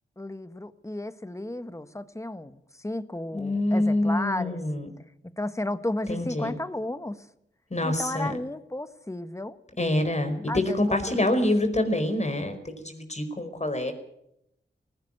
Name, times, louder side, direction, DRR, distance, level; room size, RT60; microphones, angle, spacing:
voice 1, 0.2-4.6 5.4-7.2 7.8-9.6 10.5-11.4, left 1 dB, 15° left, 12 dB, 1.5 m, -33 dB
voice 2, 3.3-4.9 6.1-6.5 7.7-8.3 9.8-13.9, left 1 dB, 35° left, 8 dB, 4.9 m, -26 dB
19.0 x 17.0 x 9.0 m, 0.80 s
cardioid pair, 55°, 19 cm